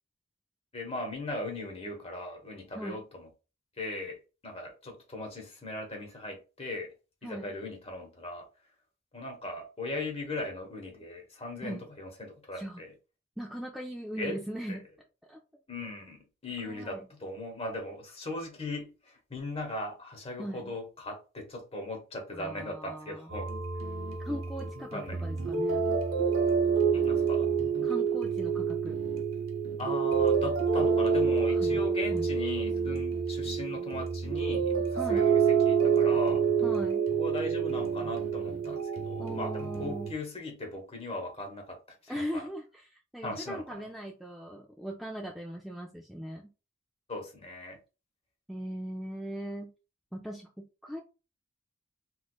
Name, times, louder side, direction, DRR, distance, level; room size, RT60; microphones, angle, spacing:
voice 1, 0.7-3.3 3.8-4.2 4.4-6.9 7.2-8.5 9.1-12.9 14.2-14.4 14.7-14.8 15.7-23.5 24.9-25.2 26.9-27.5 29.8-36.4 37.2-42.4 43.2-43.6 47.1-47.8, left 2 dB, 30° left, 1.0 m, -38 dB
voice 2, 7.2-7.5 11.6-11.8 12.5-12.8 13.4-14.9 15.3-15.4 16.6-17.1 20.4-20.7 22.3-23.3 24.2-25.9 27.8-29.0 31.5-31.8 32.1-32.3 35.0-35.3 36.6-37.1 39.2-40.1 42.1-46.5 48.5-49.7 50.1-51.0, equal, ahead, 0.3 m, -39 dB
sound 1, 23.3-40.1, right 6 dB, 90° right, 0.7 m, -28 dB
3.2 x 3.1 x 2.2 m
head